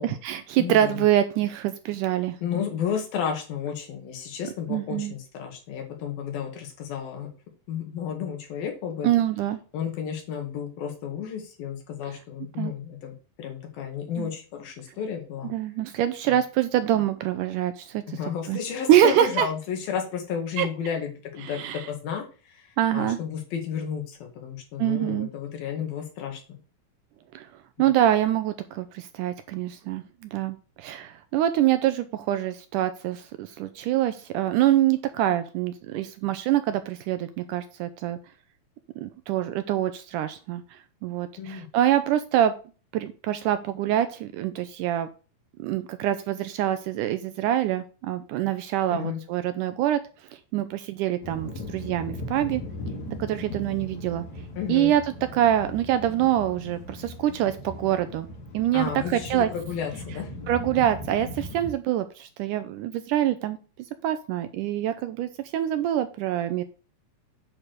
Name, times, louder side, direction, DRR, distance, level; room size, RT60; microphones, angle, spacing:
voice 1, 0.0-2.4 4.7-5.1 9.0-9.6 12.6-12.7 14.2-14.3 15.5-18.2 18.5-18.6 18.9-19.5 20.6-20.7 21.4-21.8 22.8-23.2 24.8-25.3 27.3-27.5 27.8-38.2 39.0-42.6 42.9-45.1 45.6-50.0 50.3-52.6 53.2-54.3 54.7-55.0 55.3-58.3 58.5-59.5 60.5-63.6 64.0-66.6, right 12 dB, 80° right, 10 dB, 1.9 m, -25 dB
voice 2, 0.6-1.1 2.4-7.3 7.7-9.1 9.7-15.5 16.3-16.4 18.1-26.6 27.8-27.9 41.4-41.7 48.9-49.2 54.6-54.9 58.7-60.3, left 8 dB, 85° left, 3 dB, 3.8 m, -32 dB
sound 1, 51.2-61.7, left 1 dB, 55° left, 2.8 m, -38 dB
8.8 x 4.6 x 6.5 m, 0.35 s
omnidirectional pair, 4.1 m